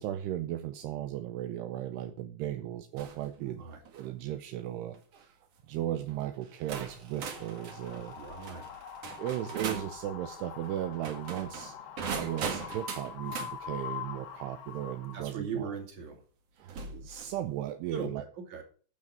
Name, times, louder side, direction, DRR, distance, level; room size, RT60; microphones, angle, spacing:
voice 1, 0.0-3.6 3.9-5.4 5.7-8.2 9.2-11.8 12.1-15.8 16.6-18.2, right 12 dB, 80° right, 7 dB, 2.6 m, -36 dB
sound 1, 3.0-3.3 3.8-4.1 4.9-5.2 6.1-6.2 6.7-9.9 10.9-13.5 15.3-15.4 16.7-17.4, right 6 dB, 65° right, 1.6 m, -40 dB
voice 2, 3.4-3.8 8.1-8.6 15.1-16.2 17.9-18.6, right 5 dB, 45° right, 3 dB, 3.4 m, -39 dB
Wind, 7.1-15.2, left 8 dB, 85° left, 1.5 m, -44 dB
12.0 x 6.4 x 6.4 m, 0.42 s
omnidirectional pair, 5.1 m